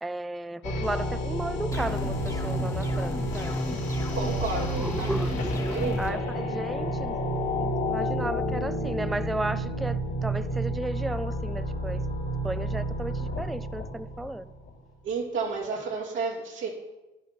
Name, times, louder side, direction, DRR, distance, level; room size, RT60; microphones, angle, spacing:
voice 1, 0.0-3.6 4.6-7.2 7.5-12.0 12.4-14.5, right 1 dB, ahead, 0.3 m, -34 dB
sound 1, 0.6-14.7, right 1 dB, 75° left, 3.0 m, -31 dB
sound 2, 1.7-6.1, left 2 dB, 15° left, 1.5 m, -32 dB
voice 2, 4.1-5.1 5.7-6.2 15.0-16.7, right 4 dB, 80° right, 2.3 m, -31 dB
10.5 x 7.0 x 6.0 m
cardioid pair, 90°, 20 cm